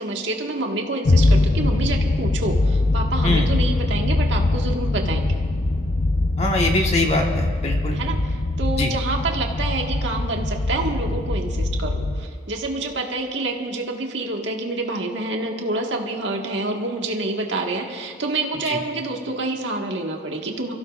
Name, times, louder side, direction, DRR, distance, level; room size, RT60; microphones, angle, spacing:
voice 1, 0.0-5.4 7.9-20.7, right 2 dB, 70° right, 1 dB, 1.7 m, -27 dB
sound 1, 1.1-12.2, left 2 dB, 50° left, 0.6 m, -22 dB
voice 2, 6.4-8.0 8.8-8.9 18.7-18.8, left 2 dB, 35° left, 1 dB, 1.5 m, -23 dB
28.0 x 15.5 x 2.5 m, 2.2 s
head